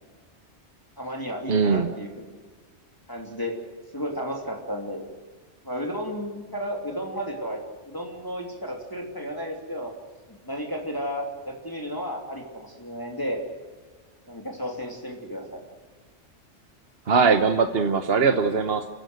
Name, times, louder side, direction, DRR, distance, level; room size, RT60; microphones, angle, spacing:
voice 1, 1.0-2.4 3.1-3.6 3.9-5.0 5.6-9.9 10.4-13.4 14.3-15.6, equal, 20° left, 0 dB, 3.2 m, -33 dB
voice 2, 1.5-1.9 17.1-18.9, right 5 dB, 60° right, 7 dB, 1.3 m, -21 dB
28.0 x 16.0 x 8.0 m, 1.4 s
omnidirectional pair, 1.2 m